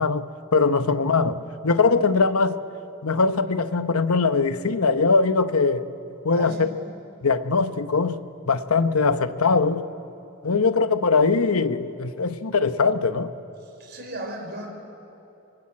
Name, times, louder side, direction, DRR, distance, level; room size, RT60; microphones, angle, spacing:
voice 1, 0.0-2.6 3.0-5.8 6.2-6.7 7.2-9.9 10.4-13.3, left 4 dB, 80° left, 0.9 m, -21 dB
voice 2, 6.3-6.7 8.8-8.9 13.8-14.7, right 1 dB, 50° right, 4.5 m, -35 dB
24.5 x 24.5 x 8.6 m
head